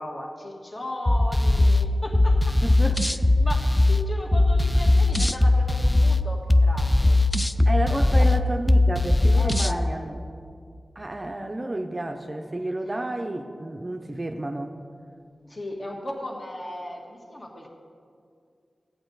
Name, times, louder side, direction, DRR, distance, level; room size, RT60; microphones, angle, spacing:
voice 1, 0.0-2.6 3.0-7.2 7.9-8.3 9.3-10.1 15.5-17.7, left 1 dB, 40° left, 0 dB, 1.6 m, -36 dB
sound 1, 1.1-9.8, left 2 dB, 15° left, 0.3 m, -20 dB
voice 2, 2.6-3.0 7.6-10.2 11.0-14.8, right 1 dB, 30° right, 5 dB, 0.6 m, -31 dB
14.5 x 8.8 x 3.9 m, 2.3 s
wide cardioid pair, 105°, 0 cm